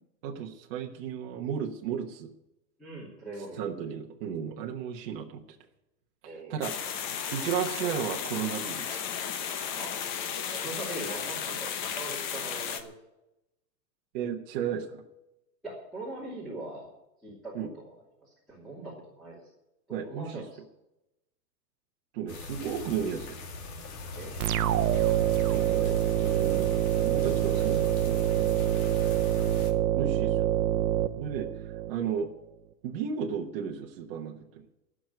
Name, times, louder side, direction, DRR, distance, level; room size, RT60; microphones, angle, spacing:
voice 1, 0.2-2.3 3.6-5.4 6.5-9.0 14.1-15.0 17.5-17.7 19.9-20.4 22.1-23.4 25.5-28.8 30.0-30.5 31.2-32.3 32.8-34.6, right 8 dB, 35° right, 1 dB, 1.2 m, -34 dB
voice 2, 2.8-3.6 6.2-6.7 9.8-10.0 10.5-12.9 15.6-16.9 17.2-17.9 18.2-19.4 19.9-20.5 24.2-24.6, right 2 dB, ahead, -7 dB, 2.7 m, -41 dB
sound 1, 6.6-12.8, left 8 dB, 30° left, 0.9 m, -34 dB
sound 2, 22.3-29.7, left 3 dB, 55° left, 2.7 m, -41 dB
sound 3, 24.4-31.9, right 12 dB, 60° right, 0.9 m, -26 dB
15.5 x 6.3 x 9.2 m, 0.90 s
hypercardioid pair, 165°, 49 cm